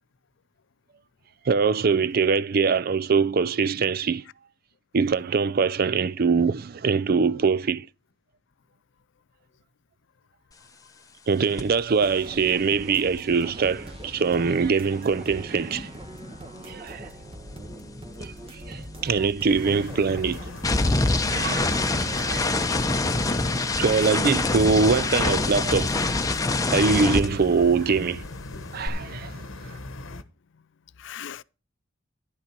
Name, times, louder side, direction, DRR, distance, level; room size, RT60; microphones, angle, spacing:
voice 1, 1.5-4.2 4.9-7.9 11.3-15.9 16.7-17.1 18.2-18.3 18.7-20.4 21.3-23.1 23.8-25.9 26.7-28.2 28.7-29.4, right 5 dB, 50° right, 0.4 m, -23 dB
voice 2, 10.6-10.9 21.6-21.7 28.8-28.9 30.5-30.7 31.0-31.4, left 9 dB, 65° left, 0.5 m, -42 dB
sound 1, 11.6-11.8 12.1-16.4 16.7-28.0 28.2-28.9, left 2 dB, 15° left, 0.8 m, -27 dB
sound 2, 12.0-26.8, right 1 dB, 30° right, 1.4 m, -43 dB
sound 3, 19.5-30.2, left 2 dB, 90° left, 1.0 m, -39 dB
11.5 x 8.5 x 4.5 m
head